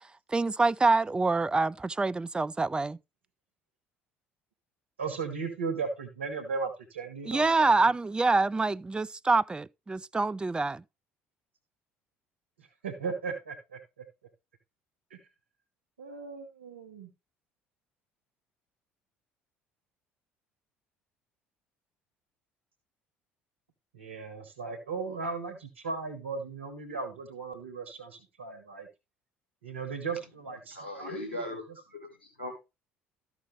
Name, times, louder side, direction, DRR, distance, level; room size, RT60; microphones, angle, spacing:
voice 1, 0.3-3.0 7.3-10.8, right 3 dB, 15° right, 0.4 m, -26 dB
voice 2, 5.0-7.5 12.8-13.8 16.0-17.1 23.9-28.9 29.6-31.2, right 4 dB, 80° right, 1.2 m, -36 dB
voice 3, 30.7-31.6 31.9-32.6, left 1 dB, 90° left, 1.5 m, -38 dB
13.0 x 5.9 x 3.2 m
figure-of-eight pair, 55°, 6 cm